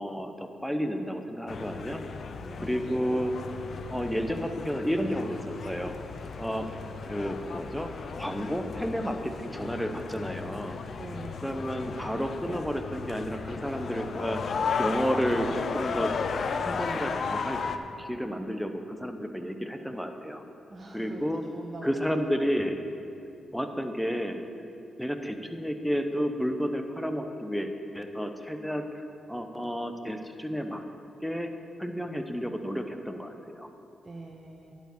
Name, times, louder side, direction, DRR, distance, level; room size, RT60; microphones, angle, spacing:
voice 1, 0.0-2.0 2.6-3.3 3.9-5.4 5.6-6.0 6.4-6.7 7.1-7.9 8.2-10.8 11.4-14.4 14.8-16.1 16.6-17.6 18.0-20.4 20.9-21.4 21.8-22.8 23.5-24.4 25.0-30.8 31.2-31.5 31.8-33.7, equal, ahead, 6 dB, 0.9 m, -31 dB
sound 1, 1.5-17.8, left 5 dB, 60° left, 0.5 m, -35 dB
voice 2, 2.4-2.7 10.9-11.5 20.7-22.0 34.0-34.7, right 2 dB, 40° right, -1 dB, 1.0 m, -43 dB
11.5 x 5.0 x 6.9 m, 2.7 s
supercardioid pair, 45°, 0 cm